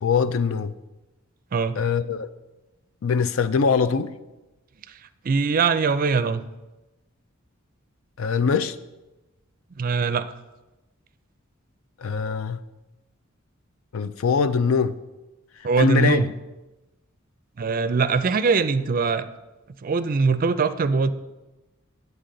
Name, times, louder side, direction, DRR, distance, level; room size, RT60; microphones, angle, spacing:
voice 1, 0.0-0.7 1.8-2.3 3.0-4.1 8.2-8.8 12.0-12.6 13.9-15.0 15.8-16.3, left 5 dB, 75° left, 14 dB, 0.4 m, -22 dB
voice 2, 5.2-6.4 9.8-10.3 15.6-16.3 17.6-19.3 19.8-21.1, right 4 dB, 45° right, 12 dB, 0.4 m, -22 dB
10.0 x 8.0 x 3.9 m, 1.1 s
head